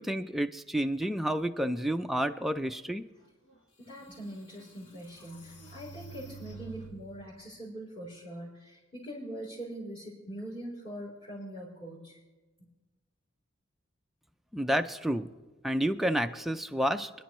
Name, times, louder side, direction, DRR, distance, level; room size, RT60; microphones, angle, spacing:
voice 1, 0.0-3.0 14.5-15.3 15.6-17.1, equal, ahead, 6 dB, 0.4 m, -30 dB
sound 1, 3.5-3.6 4.1-7.3, right 3 dB, 60° left, 1.6 m, -49 dB
voice 2, 3.8-12.2, right 1 dB, 30° left, -9 dB, 3.7 m, -42 dB
30.0 x 10.5 x 3.1 m, 1.2 s
head